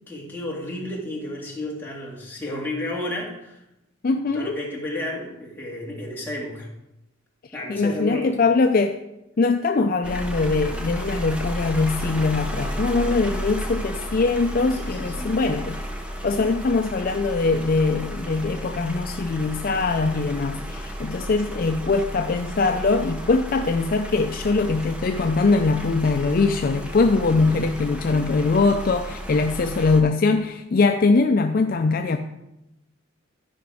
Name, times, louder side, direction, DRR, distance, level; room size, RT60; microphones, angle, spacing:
voice 1, 0.1-3.6 4.3-6.7 7.5-8.3 14.7-15.5 27.3-27.6, left 1 dB, 10° left, -4 dB, 1.9 m, -32 dB
voice 2, 4.0-4.6 7.7-9.0 9.4-15.8 16.2-32.2, left 3 dB, 45° left, 6 dB, 0.4 m, -22 dB
sound 1, 10.0-30.0, equal, 5° right, 0.8 m, -33 dB
12.0 x 5.1 x 4.8 m, 0.91 s
head